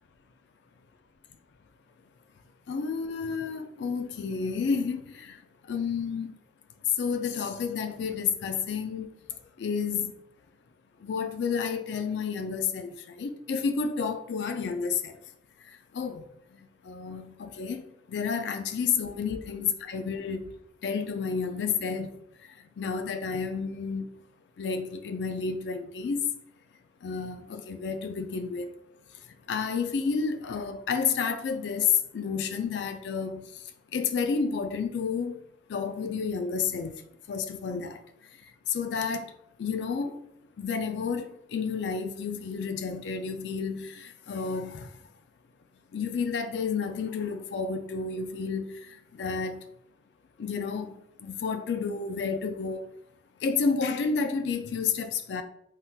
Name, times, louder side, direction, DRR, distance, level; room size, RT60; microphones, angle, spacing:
voice 1, 2.7-6.4 7.0-9.1 9.6-10.1 11.0-15.2 15.6-20.5 20.8-24.1 24.6-26.3 27.0-28.7 29.5-35.4 35.7-37.0 37.3-38.0 38.7-40.2 40.6-45.0 45.9-49.6 50.4-52.9 53.4-55.4, left 5 dB, 80° left, 0.3 m, -31 dB
3.6 x 2.8 x 2.3 m
head